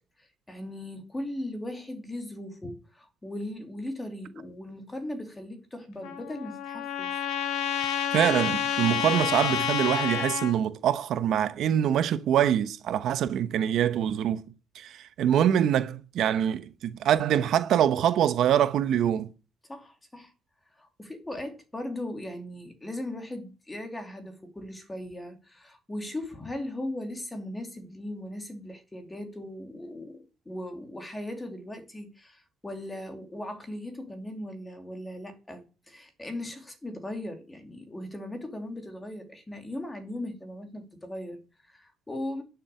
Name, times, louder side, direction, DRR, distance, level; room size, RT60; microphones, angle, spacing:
voice 1, 0.2-7.2 19.7-20.3 20.8-42.4, left 1 dB, 10° left, 2.9 m, -38 dB
Trumpet, 6.0-10.6, left 9 dB, 75° left, 2.0 m, -29 dB
voice 2, 8.1-14.4 14.7-19.3, right 10 dB, 60° right, 1.0 m, -24 dB
11.5 x 7.0 x 9.4 m
cardioid pair, 140°, 0 cm